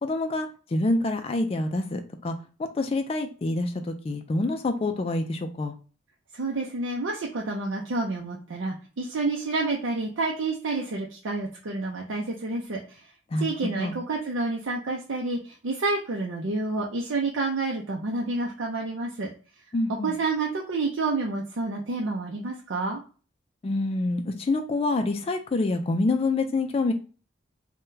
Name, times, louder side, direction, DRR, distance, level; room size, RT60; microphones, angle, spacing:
voice 1, 0.0-5.7 13.3-14.0 19.7-20.1 23.6-26.9, left 2 dB, 30° left, 6 dB, 0.3 m, -27 dB
voice 2, 6.3-13.1 13.4-19.3 20.0-23.0, right 3 dB, 90° right, 0 dB, 0.5 m, -29 dB
2.6 x 2.2 x 3.6 m, 0.38 s
head